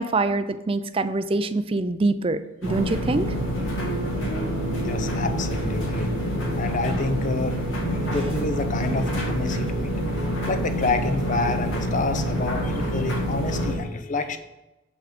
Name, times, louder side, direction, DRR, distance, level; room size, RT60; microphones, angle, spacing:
voice 1, 0.0-3.3, right 3 dB, 30° right, 11 dB, 0.5 m, -24 dB
sound 1, 2.6-13.8, equal, 80° left, 2.1 m, -27 dB
Guitar, 3.8-8.5, right 1 dB, 65° left, 2.5 m, -39 dB
voice 2, 4.8-6.1 6.5-7.6 7.9-9.9 10.5-14.4, left 3 dB, 40° left, 8 dB, 0.8 m, -28 dB
7.5 x 5.8 x 5.1 m, 0.99 s
head